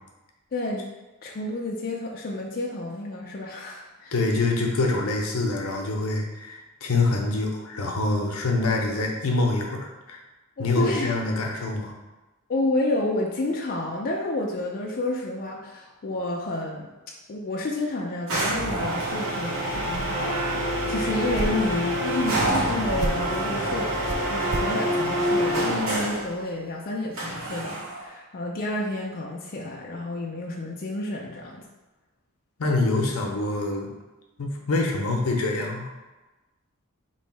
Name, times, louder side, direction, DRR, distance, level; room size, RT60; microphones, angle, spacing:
voice 1, 0.5-0.9 1.2-4.1 10.6-11.1 12.5-16.9 17.3-31.6, left 2 dB, 45° left, -2 dB, 0.4 m, -30 dB
voice 2, 4.1-10.2 10.6-11.9 32.6-33.9 34.4-35.9, left 2 dB, 75° left, 1 dB, 0.7 m, -25 dB
sound 1, 18.3-26.3 27.2-28.1, right 1 dB, 70° right, 0.9 m, -26 dB
sound 2, 19.7-20.3 21.3-21.8 22.9-23.3 24.1-24.8, right 1 dB, 30° right, 0.3 m, -31 dB
3.1 x 2.7 x 4.5 m, 1.1 s
head